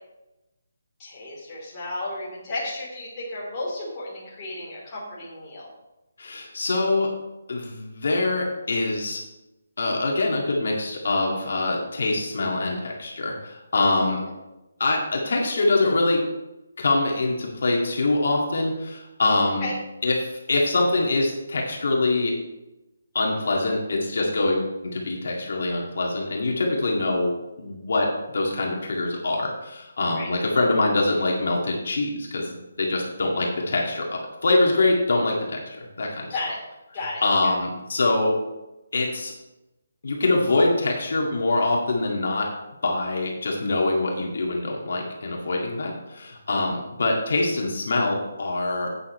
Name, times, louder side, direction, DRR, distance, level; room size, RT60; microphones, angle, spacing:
voice 1, 1.0-5.7 19.6-19.7 30.2-30.3 36.3-36.6 36.9-37.5, left 2 dB, 15° left, -7 dB, 3.4 m, -33 dB
voice 2, 6.2-7.1 7.5-9.2 9.8-14.2 14.8-16.2 16.8-19.7 20.0-22.3 23.1-28.1 28.3-34.1 34.4-36.3 37.2-38.3 38.9-39.3 40.0-42.5 42.8-48.9, left 2 dB, 55° left, -1 dB, 2.1 m, -24 dB
11.0 x 8.7 x 3.2 m, 0.98 s
hypercardioid pair, 175°, 0 cm